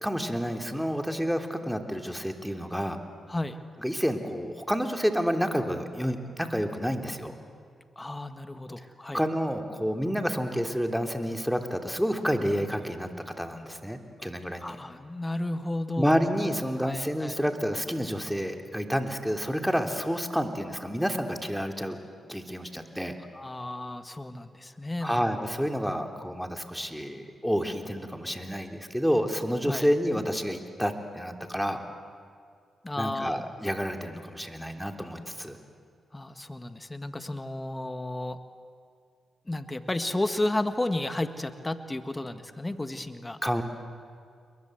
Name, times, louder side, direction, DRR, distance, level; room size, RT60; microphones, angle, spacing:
voice 1, 0.0-3.0 3.8-7.3 8.8-8.9 9.1-14.8 16.0-22.0 22.3-23.1 25.0-31.8 33.0-35.6 43.4-43.6, equal, ahead, 4 dB, 3.3 m, -29 dB
voice 2, 8.0-9.2 14.6-17.3 23.3-25.3 29.7-29.9 32.8-33.5 36.1-38.4 39.5-43.4, left 1 dB, 20° left, 9 dB, 1.9 m, -33 dB
28.5 x 22.5 x 8.0 m, 2.2 s
supercardioid pair, 40°, 0 cm